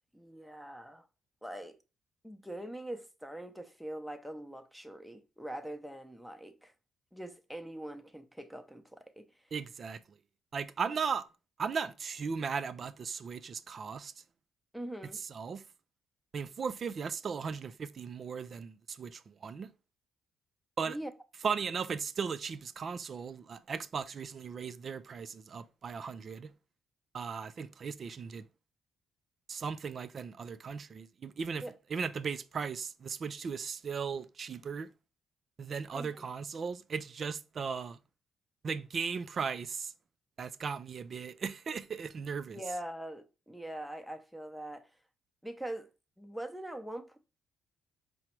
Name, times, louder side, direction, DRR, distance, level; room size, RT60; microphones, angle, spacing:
voice 1, 0.1-1.1 1.4-1.8 2.2-6.7 7.1-9.3 14.7-15.2 20.8-21.1 31.6-31.7 35.9-36.2 42.5-44.9 45.4-45.9 46.2-47.2, right 1 dB, ahead, 0.6 m, -43 dB
voice 2, 9.5-10.0 10.5-11.3 11.6-14.1 15.1-15.6 16.3-19.7 20.8-21.0 21.4-26.5 27.1-28.5 29.5-31.6 31.9-34.9 35.6-38.0 38.6-39.9 40.4-42.6, right 6 dB, 50° right, 0.4 m, -37 dB
4.7 x 2.1 x 4.3 m
cardioid pair, 90°, 0 cm